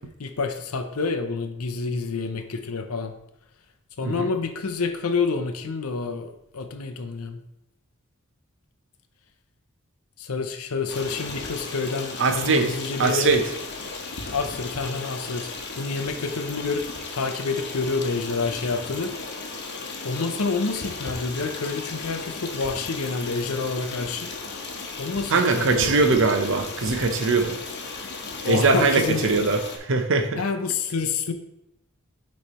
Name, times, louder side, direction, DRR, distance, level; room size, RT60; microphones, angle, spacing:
voice 1, 0.2-3.1 4.0-7.4 10.2-13.4 14.3-15.5 15.8-16.9 17.1-19.1 20.0-24.3 25.0-26.2 28.4-29.3 30.4-31.3, left 4 dB, 85° left, 7 dB, 0.7 m, -28 dB
Stream, 10.9-29.8, left 3 dB, 55° left, 1.0 m, -35 dB
voice 2, 12.2-13.4 25.3-27.6 28.4-30.4, right 3 dB, 60° right, 6 dB, 0.8 m, -21 dB
8.9 x 3.3 x 4.2 m, 0.84 s
head